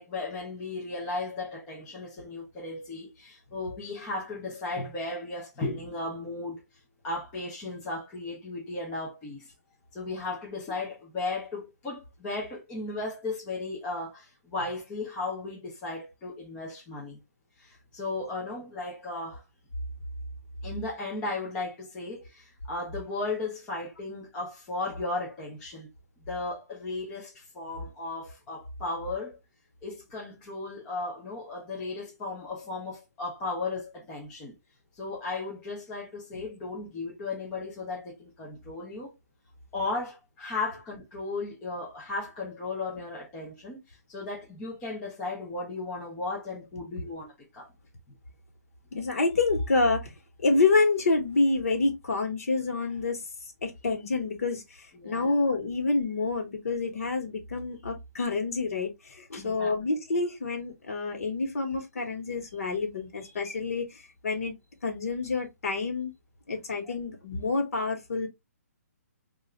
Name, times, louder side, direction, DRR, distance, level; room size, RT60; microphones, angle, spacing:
voice 1, 0.0-6.6 7.0-9.5 9.9-17.2 17.6-19.4 20.6-25.9 26.3-29.4 29.8-34.5 35.0-39.1 39.7-47.7 54.9-55.3 59.4-59.7 66.8-66.9, left 3 dB, 10° left, 0.5 m, -35 dB
voice 2, 48.9-50.1 50.4-53.2 53.6-64.5 64.8-66.1 66.5-68.3, left 3 dB, 60° left, 1.2 m, -28 dB
3.3 x 2.4 x 3.1 m
hypercardioid pair, 175°, 9 cm